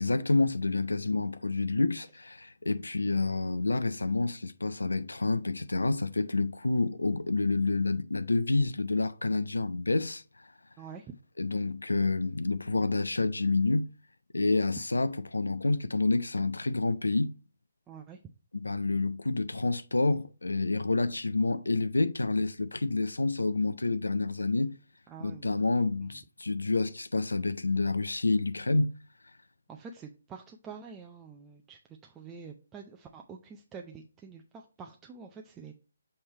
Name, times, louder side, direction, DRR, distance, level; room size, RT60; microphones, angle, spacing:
voice 1, 0.0-10.5 11.4-13.9 14.3-17.3 18.5-24.8 25.2-28.9, left 3 dB, 80° left, 0.4 m, -28 dB
voice 2, 10.8-11.1 17.9-18.2 25.1-25.6 29.7-35.7, right 6 dB, 15° right, 0.5 m, -47 dB
6.9 x 3.2 x 4.3 m
figure-of-eight pair, 140°, 0 cm